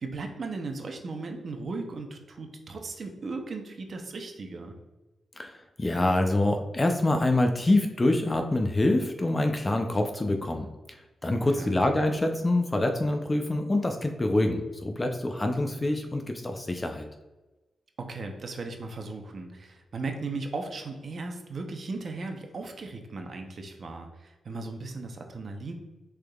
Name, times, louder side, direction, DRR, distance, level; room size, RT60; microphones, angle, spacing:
voice 1, 0.0-4.7 11.6-11.7 18.0-25.7, right 3 dB, 50° right, 4 dB, 0.7 m, -37 dB
voice 2, 5.4-10.7 11.2-17.1, left 2 dB, 20° left, 4 dB, 0.4 m, -26 dB
6.4 x 3.5 x 2.3 m, 1.1 s
wide cardioid pair, 115°, 0 cm